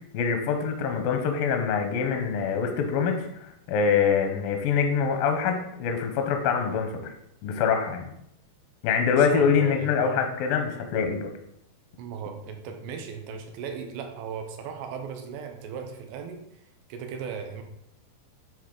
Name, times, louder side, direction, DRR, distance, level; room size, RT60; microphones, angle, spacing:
voice 1, 0.1-3.3 3.7-7.1 7.4-8.1 8.8-11.3, left 6 dB, 80° left, 5 dB, 2.1 m, -24 dB
voice 2, 9.0-10.3 12.0-16.6 16.9-17.6, right 6 dB, 90° right, 5 dB, 2.9 m, -37 dB
9.7 x 3.7 x 3.8 m, 0.77 s
omnidirectional pair, 4.9 m